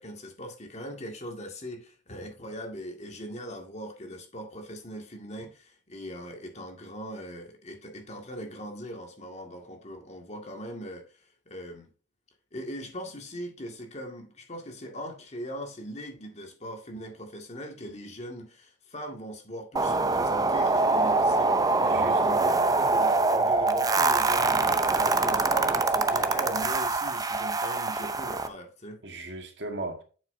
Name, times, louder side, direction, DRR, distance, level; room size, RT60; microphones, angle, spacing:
voice 1, 0.0-11.9 12.5-29.0, equal, 40° left, 2.0 m, -40 dB
sound 1, 19.8-28.5, right 3 dB, 20° right, 0.6 m, -24 dB
voice 2, 21.8-22.7 29.0-30.0, right 2 dB, 70° right, 2.0 m, -37 dB
9.1 x 7.5 x 2.7 m
head